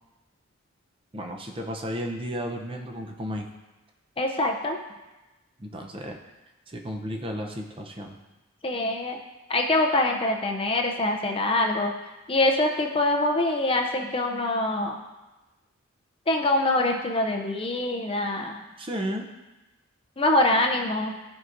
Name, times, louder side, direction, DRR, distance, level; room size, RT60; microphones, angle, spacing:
voice 1, 1.1-3.5 5.6-6.2 6.7-8.2 18.8-19.2, equal, 25° right, 2 dB, 0.6 m, -33 dB
voice 2, 4.2-4.8 8.6-9.2 9.5-11.9 12.3-15.0 16.3-18.6 20.2-21.1, left 2 dB, 25° left, 2 dB, 0.5 m, -24 dB
13.5 x 4.7 x 2.6 m, 1.1 s
head